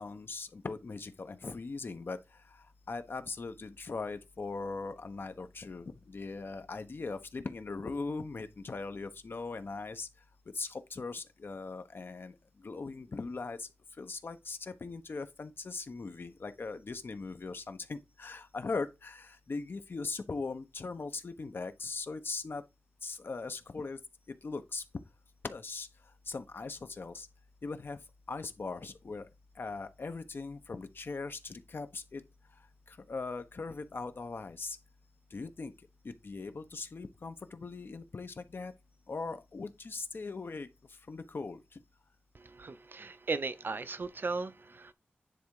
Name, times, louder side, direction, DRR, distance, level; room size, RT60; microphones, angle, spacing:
voice 1, 0.0-2.2 2.9-10.1 10.5-12.3 12.6-13.7 14.0-22.6 23.0-24.0 24.4-24.8 25.4-25.9 26.3-27.3 27.6-28.0 28.3-29.3 29.6-32.2 32.9-34.8 35.3-35.7 36.0-38.7 39.1-40.7 41.1-41.6, left 4 dB, 65° left, 1.1 m, -40 dB
voice 2, 42.3-44.9, right 4 dB, 60° right, 0.8 m, -37 dB
10.0 x 3.6 x 4.9 m
wide cardioid pair, 80°, 4 cm